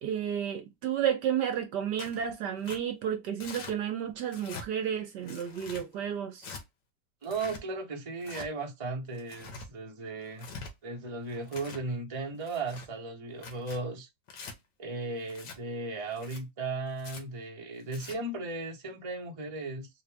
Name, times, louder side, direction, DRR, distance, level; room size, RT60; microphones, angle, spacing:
voice 1, 0.0-6.5, right 9 dB, 70° right, 1.3 m, -32 dB
Tearing, 2.0-2.2 2.6-2.8 3.4-3.7 4.3-4.7 5.3-5.8 6.4-6.6 7.2-7.6 8.2-8.5 9.1-9.7 10.3-10.7 11.3-11.8 12.4-12.9 13.4-13.8 14.3-14.5 15.3-15.6 16.1-16.4 17.0-17.2 17.8-18.2, left 4 dB, 75° left, 1.7 m, -44 dB
voice 2, 7.2-10.5 10.8-14.1 14.8-19.9, right 3 dB, 25° right, 0.9 m, -36 dB
4.0 x 2.4 x 3.3 m
omnidirectional pair, 2.0 m